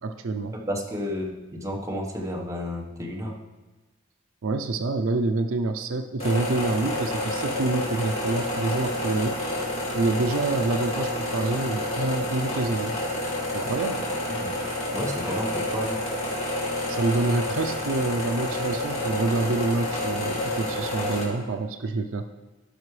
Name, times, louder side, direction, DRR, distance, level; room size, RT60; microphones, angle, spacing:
voice 1, 0.0-0.5 4.4-9.4 9.9-12.9 13.5-14.0 16.9-22.3, right 3 dB, 70° right, 7 dB, 0.5 m, -27 dB
voice 2, 0.5-3.4 14.3-14.5 14.9-16.0, equal, 15° right, -1 dB, 1.2 m, -31 dB
sound 1, 6.2-21.2, left 1 dB, 35° left, 2.5 m, -29 dB
15.0 x 6.0 x 3.2 m, 1.2 s
head